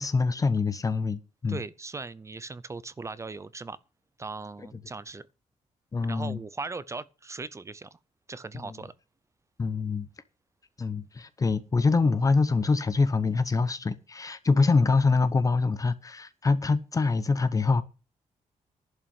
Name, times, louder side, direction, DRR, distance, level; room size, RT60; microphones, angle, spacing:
voice 1, 0.0-1.6 5.9-6.4 9.6-10.1 10.8-17.8, left 4 dB, 25° left, 0.9 m, -25 dB
voice 2, 1.5-3.8 4.2-5.2 6.1-8.0 8.3-8.9, right 3 dB, 25° right, 0.6 m, -38 dB
11.0 x 6.0 x 8.7 m
wide cardioid pair, 140°, 13 cm